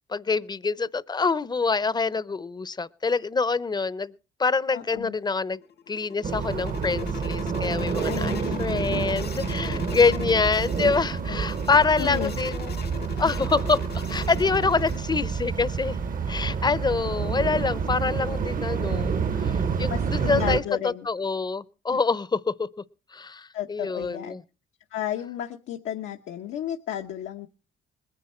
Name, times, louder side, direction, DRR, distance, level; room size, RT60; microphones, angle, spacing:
voice 1, 0.1-4.1 4.4-5.6 5.9-12.7 13.2-16.0 16.3-22.7 23.1-24.4, left 4 dB, 20° left, 0.6 m, -26 dB
voice 2, 4.7-5.1 8.0-9.0 11.3-11.4 12.0-12.3 19.9-21.1 21.9-22.0 23.5-24.4 24.9-27.5, left 11 dB, 85° left, 0.9 m, -33 dB
sound 1, 5.5-15.0, left 8 dB, 55° left, 0.9 m, -39 dB
sound 2, 6.2-20.6, right 6 dB, 45° right, 0.9 m, -28 dB
20.5 x 9.7 x 4.4 m
cardioid pair, 90°, 20 cm